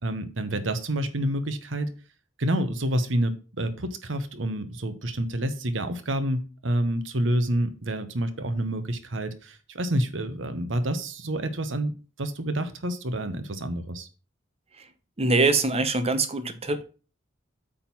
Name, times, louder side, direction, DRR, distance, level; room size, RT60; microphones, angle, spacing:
voice 1, 0.0-1.9 2.4-14.1, right 1 dB, 75° right, 1.1 m, -28 dB
voice 2, 15.2-16.8, right 3 dB, 30° right, 0.9 m, -23 dB
8.7 x 3.8 x 6.0 m
head